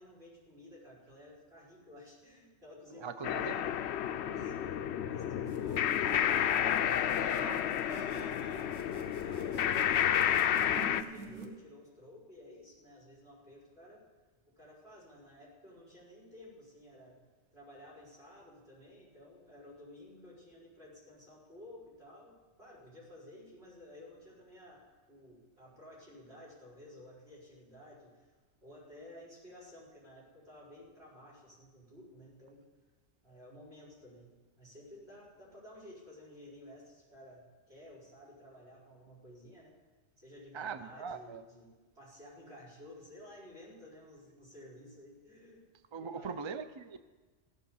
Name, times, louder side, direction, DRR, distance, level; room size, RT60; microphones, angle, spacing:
voice 1, 0.0-3.8 4.1-4.8 5.1-5.7 6.0-14.0 14.6-17.2 17.5-24.8 25.1-28.3 28.6-32.6 33.2-39.7 40.2-41.7 42.0-45.6 46.0-46.4, left 1 dB, 65° right, -5 dB, 5.1 m, -53 dB
voice 2, 2.9-3.6 4.3-4.7 40.5-41.4 45.9-47.0, right 5 dB, 40° right, 11 dB, 0.4 m, -41 dB
sound 1, 3.2-11.0, left 10 dB, 70° left, 0.8 m, -31 dB
sound 2, 5.4-11.5, right 3 dB, 85° right, 1.6 m, -47 dB
15.5 x 8.3 x 7.1 m, 1.3 s
omnidirectional pair, 1.2 m